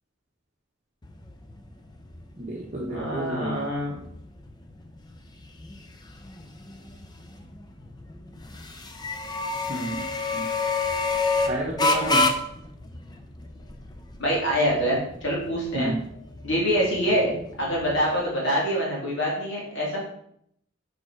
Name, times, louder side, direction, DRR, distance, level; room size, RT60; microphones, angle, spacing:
sound 1, 1.0-18.2, left 3 dB, 20° left, 0.6 m, -30 dB
voice 1, 2.4-3.6 9.7-10.0 10.3-10.4 11.4-12.3 15.7-16.0, right 1 dB, 35° right, -3 dB, 1.0 m, -30 dB
voice 2, 2.9-4.0 14.2-15.9 16.4-17.3 17.6-20.0, equal, 60° left, -4 dB, 2.4 m, -25 dB
6.9 x 4.9 x 4.5 m, 0.72 s
head